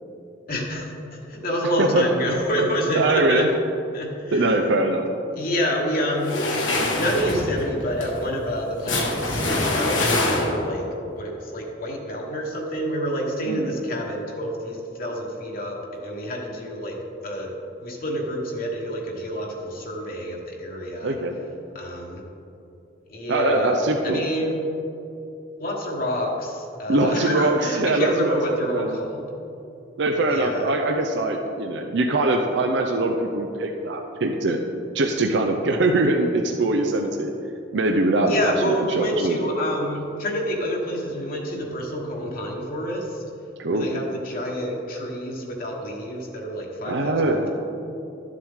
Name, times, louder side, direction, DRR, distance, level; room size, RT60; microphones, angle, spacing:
voice 1, 0.5-3.5 3.9-4.6 5.3-6.4 7.0-17.5 17.8-21.2 21.7-22.2 23.1-24.6 25.6-29.2 30.3-30.7 38.3-43.2 43.7-47.5, equal, 50° left, -2 dB, 1.3 m, -28 dB
voice 2, 3.0-3.5 4.3-5.0 13.5-13.7 21.0-21.3 23.3-24.2 26.9-29.0 30.0-34.6 34.9-37.3 37.7-38.5 38.9-39.5 43.6-43.9 46.9-47.4, right 2 dB, 65° right, 3 dB, 0.6 m, -22 dB
sound 1, 6.2-10.8, left 2 dB, 85° left, 1.5 m, -25 dB
12.0 x 7.4 x 3.6 m, 2.8 s
head